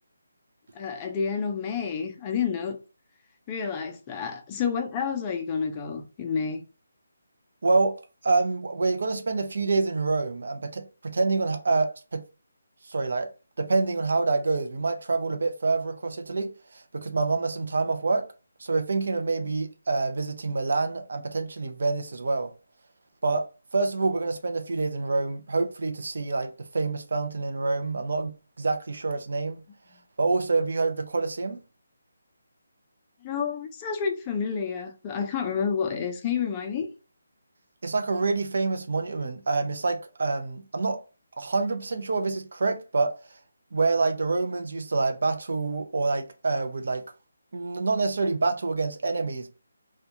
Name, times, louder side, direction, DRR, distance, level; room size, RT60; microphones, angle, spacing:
voice 1, 0.7-2.8 3.5-6.6 33.2-36.9, left 6 dB, 20° left, 0.4 m, -29 dB
voice 2, 7.6-8.0 8.2-12.2 12.9-13.3 13.6-16.5 16.9-18.3 18.6-22.5 23.2-23.5 23.7-28.3 28.6-29.6 30.2-31.6 37.8-41.0 41.4-43.1 43.7-47.0 47.5-49.5, right 3 dB, 65° right, 0.4 m, -26 dB
2.4 x 2.2 x 2.8 m
figure-of-eight pair, 160°, 0 cm